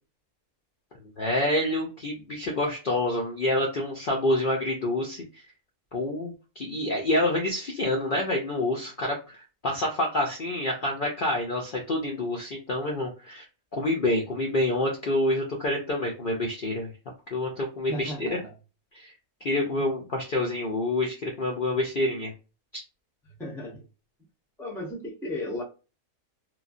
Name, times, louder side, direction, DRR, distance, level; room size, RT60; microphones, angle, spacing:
voice 1, 1.2-5.4 5.9-13.4 13.7-16.9 17.3-18.4 18.9-19.1 19.4-22.3 22.7-22.8, left 1 dB, 55° left, 0.6 m, -27 dB
voice 2, 17.9-18.5 19.6-19.8 23.4-23.8 24.6-25.6, left 1 dB, 5° left, 0.4 m, -35 dB
3.0 x 2.2 x 2.5 m
omnidirectional pair, 1.5 m